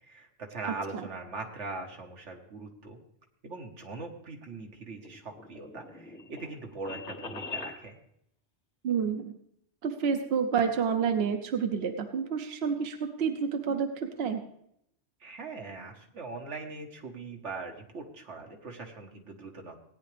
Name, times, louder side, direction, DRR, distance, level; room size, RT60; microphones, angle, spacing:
voice 1, 0.0-3.0 3.4-8.0 15.2-19.8, right 3 dB, 85° right, 3 dB, 1.7 m, -41 dB
voice 2, 0.6-1.1 8.8-9.3 9.8-14.4, right 6 dB, 60° right, 6 dB, 1.0 m, -29 dB
sound 1, 4.7-7.8, left 3 dB, 85° left, 1.9 m, -42 dB
17.0 x 9.5 x 3.4 m, 0.74 s
omnidirectional pair, 1.2 m